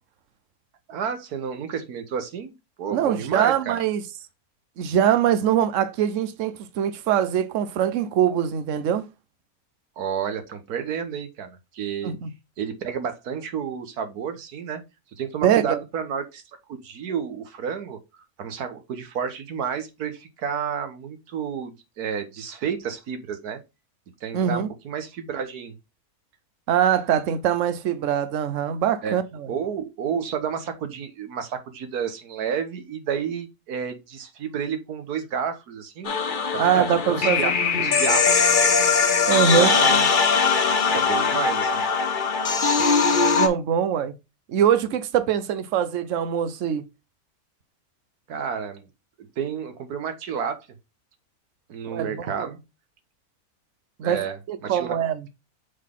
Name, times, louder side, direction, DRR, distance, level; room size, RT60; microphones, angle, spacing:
voice 1, 0.9-2.5 2.8-3.8 10.0-12.1 12.6-14.8 15.2-16.4 16.7-18.0 18.4-23.6 24.2-25.7 29.0-29.2 29.5-36.1 36.5-37.5 37.8-38.6 39.6-40.1 40.9-41.9 48.3-48.9 49.4-50.6 51.7-52.6 54.0-54.4 54.6-55.0, right 7 dB, 85° right, 1.6 m, -30 dB
voice 2, 2.9-4.0 4.8-9.1 12.0-12.3 15.4-15.8 24.3-24.7 26.7-29.5 36.6-37.4 37.7-38.0 39.3-39.7 43.3-44.1 44.5-46.8 51.9-52.5 54.0-55.3, right 9 dB, 60° right, 1.0 m, -23 dB
sound 1, 36.0-43.5, left 5 dB, 40° left, 0.8 m, -20 dB
6.4 x 4.0 x 3.6 m
omnidirectional pair, 1.6 m